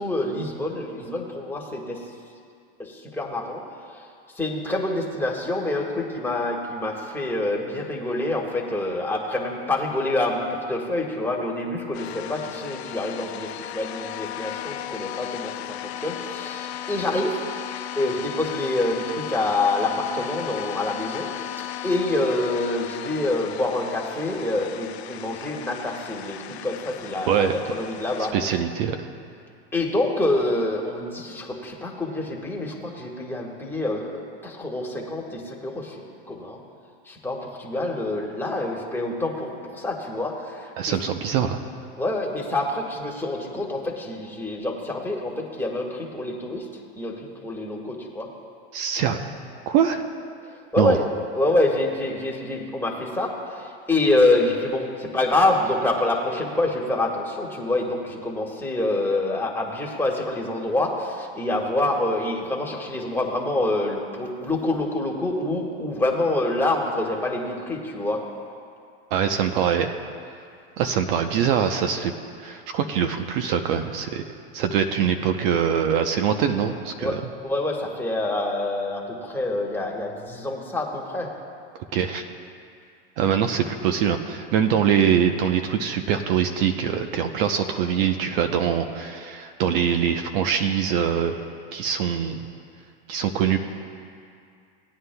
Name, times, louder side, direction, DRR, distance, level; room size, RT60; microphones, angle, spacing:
voice 1, 0.0-2.0 2.8-3.6 3.9-4.1 4.3-28.3 29.7-36.6 37.0-41.0 42.0-46.7 47.0-48.3 50.7-51.0 51.3-68.2 70.9-71.0 77.0-81.3 83.2-83.3, left 2 dB, 5° left, -2 dB, 1.6 m, -26 dB
sound 1, 11.9-28.3, left 11 dB, 85° left, 0.5 m, -36 dB
voice 2, 28.3-29.0 40.8-41.6 48.7-49.2 49.7-50.0 50.8-51.0 69.1-70.0 70.8-72.1 72.4-74.2 74.5-77.2 81.9-82.3 83.2-91.4 91.7-92.4 93.1-93.6, right 8 dB, 60° right, 7 dB, 0.8 m, -23 dB
18.5 x 9.6 x 2.3 m, 2.3 s
hypercardioid pair, 115°, 31 cm